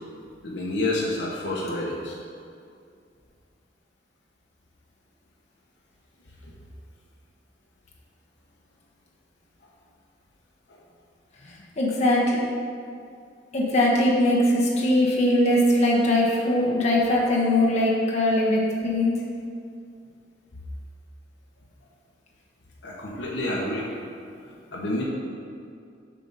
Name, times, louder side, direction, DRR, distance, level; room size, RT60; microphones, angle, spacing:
voice 1, 0.4-2.2 6.4-6.5 10.7-10.8 22.8-23.9 24.4-25.0, left 1 dB, 70° left, -3 dB, 1.0 m, -29 dB
voice 2, 11.5-12.4 13.5-19.1, left 1 dB, 40° left, -5 dB, 1.2 m, -21 dB
7.2 x 3.9 x 5.4 m, 2.4 s
head